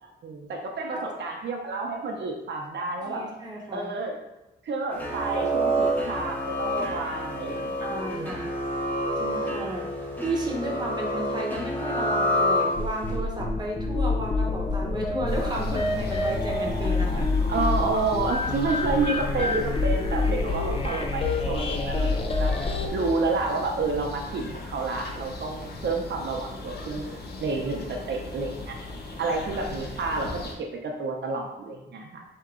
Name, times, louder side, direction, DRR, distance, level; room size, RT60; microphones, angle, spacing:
voice 1, 0.0-3.2 3.7-4.2 4.6-7.6 8.1-8.6 17.1-22.5 22.9-28.8 29.2-32.2, right 3 dB, 75° right, 1 dB, 0.7 m, -30 dB
voice 2, 3.0-3.9 7.5-8.4 8.7-8.9 9.2-17.3, right 1 dB, 20° right, -1 dB, 0.9 m, -33 dB
sound 1, 4.9-13.1, equal, 10° left, 0.8 m, -28 dB
sound 2, 12.7-22.9, left 3 dB, 30° left, 0.5 m, -27 dB
sound 3, 15.3-30.6, left 2 dB, 60° left, 0.8 m, -38 dB
4.6 x 2.9 x 3.7 m, 0.95 s
wide cardioid pair, 145°, 18 cm